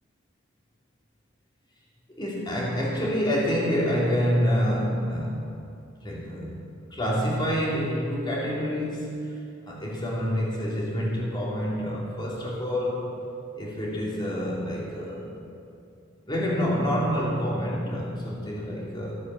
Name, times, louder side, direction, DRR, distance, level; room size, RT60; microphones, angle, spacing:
voice 1, 2.2-5.5 6.0-6.6 6.9-13.1 13.5-15.3 16.3-19.2, equal, 25° left, -5 dB, 3.1 m, -27 dB
14.0 x 8.7 x 7.6 m, 2.5 s
head